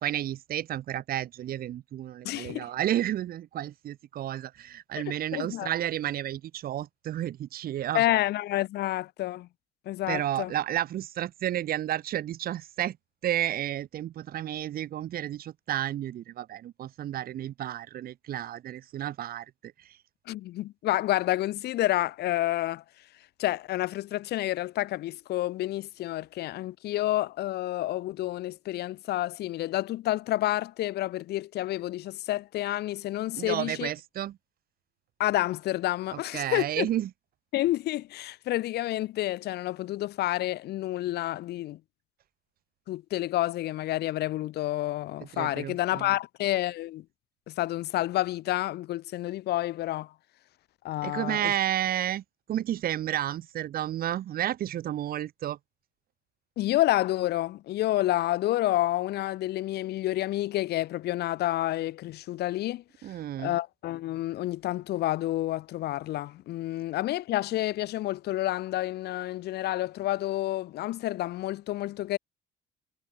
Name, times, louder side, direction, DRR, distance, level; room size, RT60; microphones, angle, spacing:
voice 1, 0.0-8.2 10.1-13.0 13.2-19.5 33.3-34.4 36.1-37.1 45.3-46.2 51.0-52.2 52.5-55.6 63.0-63.5, right 12 dB, 60° right, 2.6 m, -31 dB
voice 2, 2.2-2.6 5.1-5.7 7.9-9.5 9.9-10.5 20.3-22.8 23.4-33.9 35.2-36.9 37.5-41.8 42.9-47.0 47.5-50.1 50.8-51.5 56.6-62.8 63.4-72.2, left 15 dB, 75° left, 2.7 m, -29 dB
cardioid pair, 110°, 17 cm